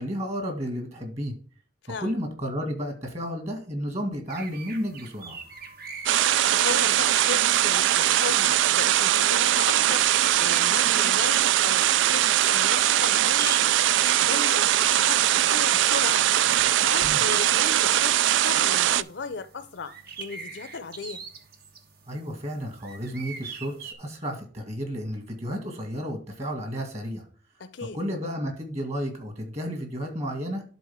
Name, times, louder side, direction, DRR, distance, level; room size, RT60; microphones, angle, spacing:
voice 1, 0.0-1.3 2.0-5.4 17.0-17.2 22.1-27.3 27.8-30.6, equal, 35° right, 2.2 m, -32 dB
sound 1, 4.3-23.9, right 5 dB, 60° right, 1.2 m, -42 dB
sound 2, 6.1-19.0, right 12 dB, 80° right, 0.3 m, -21 dB
voice 2, 6.5-10.1 10.4-13.7 14.2-16.3 16.8-21.2 27.6-28.0, left 4 dB, 70° left, 0.6 m, -36 dB
11.5 x 4.0 x 3.6 m
head